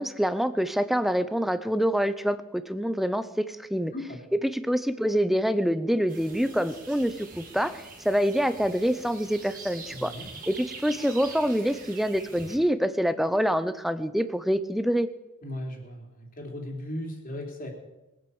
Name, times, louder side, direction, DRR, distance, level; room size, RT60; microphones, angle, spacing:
voice 1, 0.0-3.9 4.4-10.1 10.5-15.1, equal, ahead, 12 dB, 0.7 m, -26 dB
voice 2, 3.9-4.2 9.9-10.2 15.4-17.7, left 1 dB, 45° left, 2 dB, 3.3 m, -37 dB
sound 1, 6.1-12.6, right 4 dB, 40° right, 2.9 m, -44 dB
21.0 x 9.1 x 7.1 m, 0.99 s
head